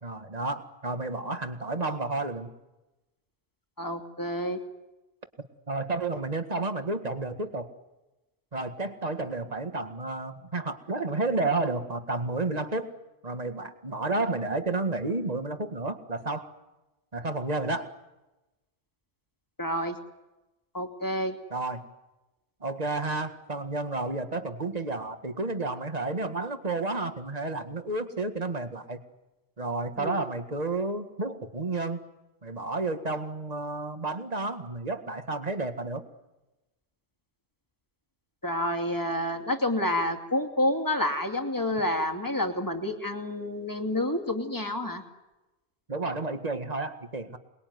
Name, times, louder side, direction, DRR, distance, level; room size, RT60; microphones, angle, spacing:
voice 1, 0.0-2.5 5.7-7.7 8.5-12.9 13.2-16.5 17.1-17.9 21.5-21.9 22.6-29.0 29.6-32.0 32.4-36.1 45.9-47.4, right 3 dB, 35° right, 8 dB, 2.0 m, -31 dB
voice 2, 3.8-4.6 19.6-20.0 20.7-21.4 30.0-30.2 38.4-45.0, left 1 dB, 20° left, 5 dB, 2.5 m, -29 dB
27.5 x 21.0 x 9.6 m, 1.0 s
omnidirectional pair, 1.1 m